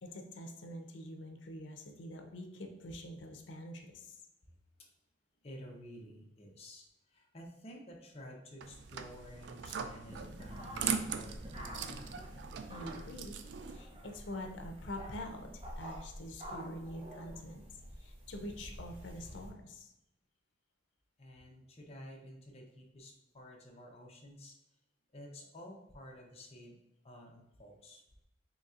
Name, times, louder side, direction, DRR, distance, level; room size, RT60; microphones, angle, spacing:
voice 1, 0.0-4.2 12.7-13.4 13.7-17.7 18.0-19.9, left 1 dB, 80° left, 4 dB, 0.5 m, -45 dB
voice 2, 5.4-6.8 7.1-12.3 21.2-24.6 25.1-26.8 27.0-28.0, equal, 35° left, 0 dB, 0.7 m, -52 dB
sound 1, 8.6-13.8, right 6 dB, 65° right, 0.3 m, -40 dB
sound 2, 10.1-19.5, equal, 30° right, 0.6 m, -48 dB
4.1 x 3.1 x 2.4 m, 0.83 s
head